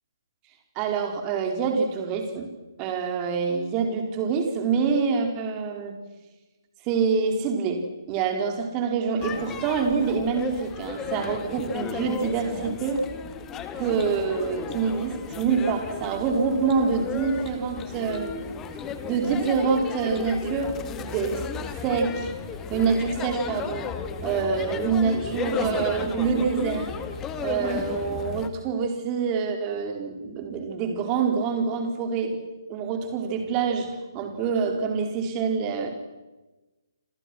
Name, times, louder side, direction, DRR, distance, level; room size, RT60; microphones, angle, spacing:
voice 1, 0.8-2.5 2.8-5.9 6.8-13.0 13.8-18.3 19.0-21.4 21.8-22.3 22.7-23.9 24.2-26.9 27.4-32.4 32.7-33.9 34.1-35.9, right 5 dB, 20° right, 4 dB, 4.4 m, -26 dB
sound 1, 9.2-28.5, left 6 dB, 15° left, 1.8 m, -34 dB
28.5 x 27.5 x 6.3 m, 1.1 s
figure-of-eight pair, 140°, 2 cm